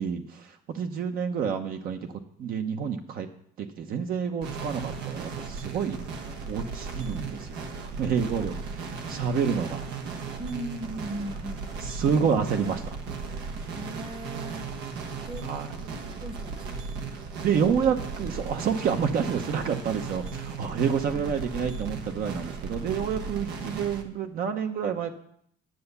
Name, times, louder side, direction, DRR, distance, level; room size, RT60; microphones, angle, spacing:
voice 1, 0.0-3.3 3.6-6.0 6.5-9.8 11.8-13.0 15.4-15.7 17.1-25.1, right 7 dB, 60° right, 5 dB, 1.0 m, -29 dB
sound 1, 4.4-24.0, right 4 dB, 90° right, 1.3 m, -36 dB
voice 2, 10.4-11.7 13.7-14.7 15.2-15.5 15.9-17.1 21.1-21.3, right 1 dB, 30° right, 8 dB, 1.2 m, -38 dB
10.5 x 6.9 x 6.8 m, 0.67 s
cardioid pair, 110°, 17 cm